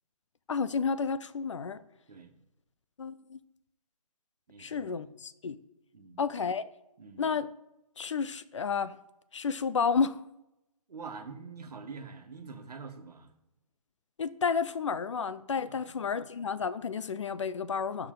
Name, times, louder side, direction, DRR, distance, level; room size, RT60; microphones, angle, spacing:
voice 1, 0.5-1.8 3.0-3.4 4.6-5.6 6.2-6.7 7.2-7.5 8.0-8.9 9.3-10.2 14.2-18.1, left 5 dB, 50° left, 15 dB, 0.5 m, -31 dB
voice 2, 4.5-5.1 5.9-6.2 7.0-7.3 10.9-13.3 15.6-16.2, right 5 dB, 75° right, 6 dB, 1.5 m, -46 dB
12.0 x 4.6 x 3.8 m, 0.92 s
hypercardioid pair, 170°, 20 cm